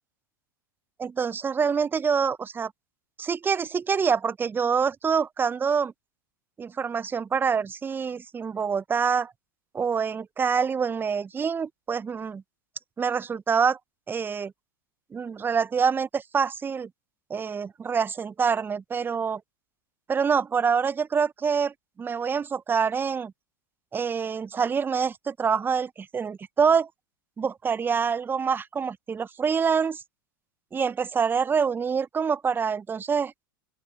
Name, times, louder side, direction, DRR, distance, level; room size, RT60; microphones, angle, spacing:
voice 1, 1.0-2.7 3.2-5.9 6.6-9.3 9.7-12.4 13.0-13.8 14.1-14.5 15.1-16.9 17.3-19.4 20.1-23.3 23.9-26.9 27.4-30.0 30.7-33.3, right 6 dB, 15° right, 0.9 m, -26 dB
open air
figure-of-eight pair, 90°, 12 cm